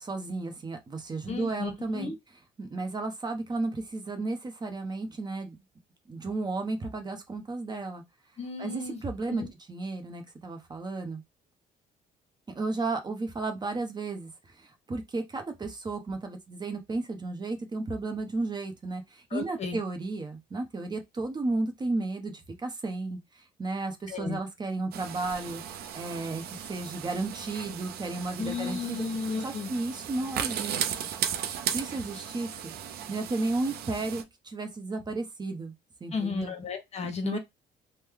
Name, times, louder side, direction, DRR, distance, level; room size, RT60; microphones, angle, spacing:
voice 1, 0.0-2.1 2.6-5.6 6.1-8.0 8.6-11.2 12.5-25.6 25.9-29.0 29.4-31.1 31.7-32.7 33.1-35.7 36.0-36.5 37.2-37.4, right 3 dB, 25° right, 0.8 m, -33 dB
voice 2, 1.3-2.1 8.4-9.0 9.3-9.5 19.3-19.8 24.1-24.4 28.4-29.7 32.1-32.2 36.1-37.4, left 5 dB, 40° left, 1.0 m, -34 dB
sound 1, 24.9-34.2, right 9 dB, 65° right, 0.6 m, -36 dB
3.1 x 2.2 x 3.6 m
cardioid pair, 110°, 17 cm